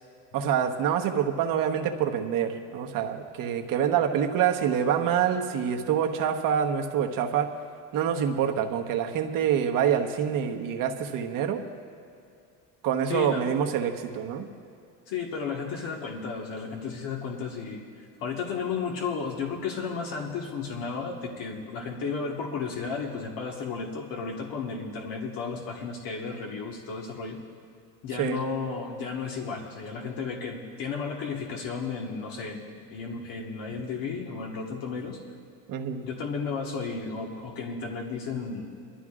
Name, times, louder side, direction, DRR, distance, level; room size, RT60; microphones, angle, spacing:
voice 1, 0.3-7.5 7.9-11.6 12.8-14.5 28.2-28.4 35.7-36.1, right 8 dB, 65° right, 4 dB, 1.2 m, -26 dB
voice 2, 13.1-13.5 15.1-17.8 18.2-27.4 28.0-35.2 36.0-38.7, left 5 dB, 75° left, -1 dB, 1.6 m, -33 dB
23.0 x 12.5 x 2.5 m, 2.4 s
cardioid pair, 135°, 35 cm